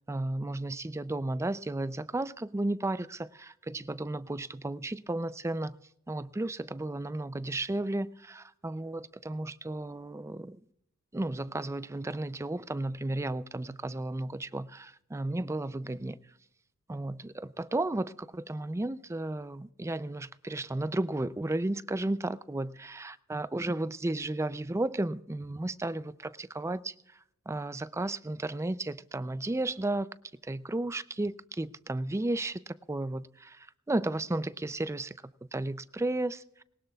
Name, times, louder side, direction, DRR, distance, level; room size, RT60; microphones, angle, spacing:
voice 1, 0.1-5.8 6.1-10.6 11.1-16.2 16.9-26.9 27.5-30.1 30.4-35.2 35.5-36.6, right 2 dB, 15° right, 0.4 m, -33 dB
21.0 x 19.0 x 2.3 m
head